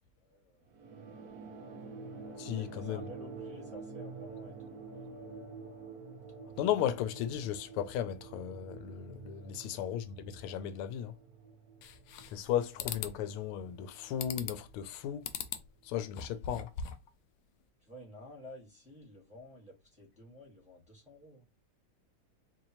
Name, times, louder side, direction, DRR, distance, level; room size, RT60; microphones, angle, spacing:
voice 1, 0.2-0.7 1.3-1.6 2.5-5.4 9.4-9.5 17.8-21.5, left 1 dB, 5° right, 1.3 m, -52 dB
sound 1, 0.7-15.6, right 4 dB, 65° right, 1.0 m, -49 dB
voice 2, 2.4-3.0 6.6-11.1 12.3-15.3 15.8-16.7, left 10 dB, 90° left, 1.5 m, -35 dB
sound 2, 11.8-12.5 12.8-13.2 14.2-14.7 15.2-15.7 16.1-17.1, left 7 dB, 75° left, 1.1 m, -40 dB
4.2 x 2.7 x 2.9 m
omnidirectional pair, 2.3 m